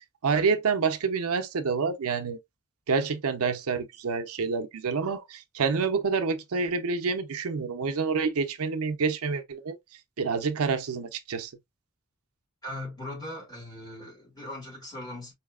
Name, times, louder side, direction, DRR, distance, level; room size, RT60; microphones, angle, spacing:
voice 1, 0.2-2.4 2.9-9.8 10.2-11.5, right 5 dB, 80° right, 0.6 m, -28 dB
voice 2, 12.6-15.3, left 1 dB, 15° left, 2.3 m, -39 dB
4.7 x 2.7 x 2.3 m
head